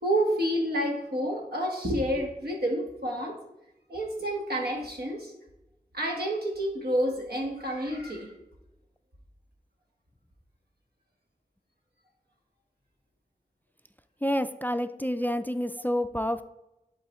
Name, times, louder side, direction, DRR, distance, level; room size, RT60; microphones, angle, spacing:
voice 1, 0.0-3.4 3.9-5.3 5.9-8.3 15.2-15.3, right 1 dB, 85° right, 0 dB, 1.3 m, -29 dB
voice 2, 14.2-16.4, equal, 10° left, 11 dB, 0.3 m, -28 dB
11.0 x 3.8 x 3.0 m, 0.92 s
wide cardioid pair, 45°, 16 cm